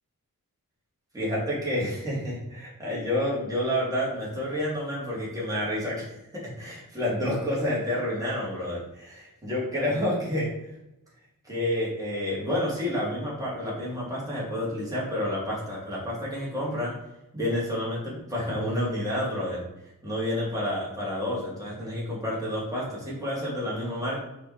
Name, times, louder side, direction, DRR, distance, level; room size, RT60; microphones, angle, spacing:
voice 1, 1.1-10.5 11.4-16.9 17.3-19.6 20.0-24.2, left 1 dB, 10° right, -7 dB, 2.8 m, -29 dB
6.3 x 5.4 x 4.4 m, 0.88 s
wide cardioid pair, 105°, 36 cm